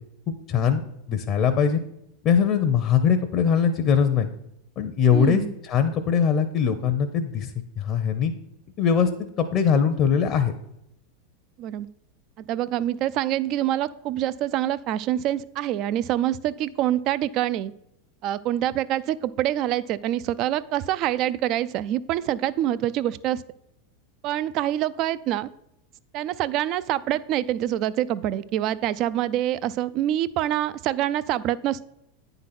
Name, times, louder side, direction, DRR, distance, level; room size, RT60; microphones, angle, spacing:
voice 1, 0.3-1.8 2.2-4.3 4.8-7.5 7.8-8.3 8.8-9.1 9.4-10.5, left 7 dB, 40° left, 7 dB, 0.7 m, -21 dB
voice 2, 5.1-5.5 11.6-11.9 12.4-17.7 18.2-23.4 24.2-25.5 26.1-31.8, right 12 dB, 50° right, 17 dB, 0.4 m, -26 dB
9.4 x 4.0 x 5.9 m, 0.80 s
hypercardioid pair, 105°, 0 cm